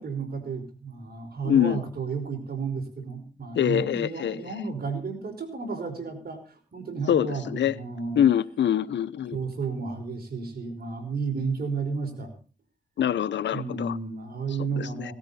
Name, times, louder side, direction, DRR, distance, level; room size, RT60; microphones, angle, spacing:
voice 1, 0.0-8.2 9.3-12.3 13.5-15.1, right 4 dB, 60° right, 5.2 m, -32 dB
voice 2, 1.4-1.8 3.5-4.5 7.1-7.7 8.1-9.4 13.0-14.0 14.8-15.1, left 10 dB, 80° left, 0.8 m, -24 dB
18.0 x 13.0 x 4.3 m
cardioid pair, 65°, 18 cm